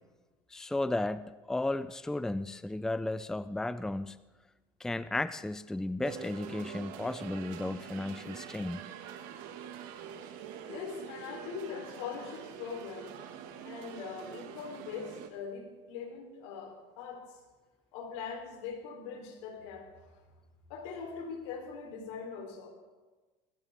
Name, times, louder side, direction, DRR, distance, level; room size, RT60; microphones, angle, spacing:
voice 1, 0.5-4.2 4.8-8.8, left 2 dB, 5° left, 15 dB, 0.4 m, -34 dB
sound 1, 6.0-15.3, right 8 dB, 75° right, 1.8 m, -45 dB
voice 2, 10.7-13.2 13.6-17.4 17.9-20.2 20.7-22.7, left 6 dB, 85° left, 3 dB, 3.6 m, -42 dB
20.0 x 16.0 x 3.6 m, 1.2 s
supercardioid pair, 115°, 14 cm